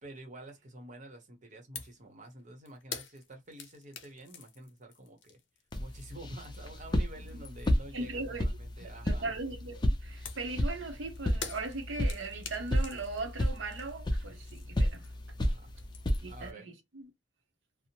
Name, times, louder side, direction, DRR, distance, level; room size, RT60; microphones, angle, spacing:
voice 1, 0.0-5.4 5.8-9.3 15.4-15.7 16.3-16.7, right 1 dB, 45° right, 0.9 m, -49 dB
sound 1, 1.8-2.0 2.3-6.8 7.1-7.9 10.3-15.4 15.6-16.4, left 6 dB, 75° left, 0.6 m, -47 dB
sound 2, 5.7-16.5, equal, 25° left, 0.5 m, -33 dB
voice 2, 7.9-8.5 8.8-15.1 16.2-17.1, right 3 dB, 85° right, 0.7 m, -39 dB
2.7 x 2.0 x 2.8 m
head